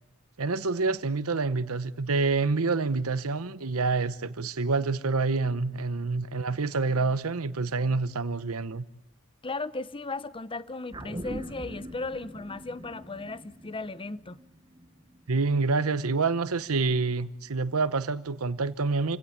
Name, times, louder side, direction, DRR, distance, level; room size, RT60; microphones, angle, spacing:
voice 1, 0.4-8.8 15.3-19.2, right 4 dB, 80° right, 0.9 m, -27 dB
voice 2, 9.4-14.4, left 3 dB, 25° left, 0.8 m, -36 dB
sound 1, 10.9-15.5 15.8-15.9, right 1 dB, 20° right, 1.0 m, -42 dB
27.5 x 17.0 x 8.5 m
head